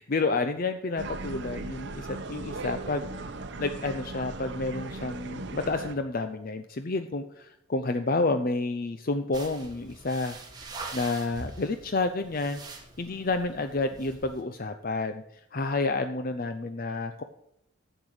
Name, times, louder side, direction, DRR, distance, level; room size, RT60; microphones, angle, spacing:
voice 1, 0.0-3.0 3.6-10.4 10.9-17.2, left 3 dB, 40° left, 9 dB, 0.5 m, -30 dB
sound 1, 1.0-5.9, right 3 dB, 55° right, 0.8 m, -38 dB
sound 2, 9.3-14.4, right 3 dB, 20° right, 1.5 m, -44 dB
11.0 x 8.1 x 4.9 m, 0.82 s
head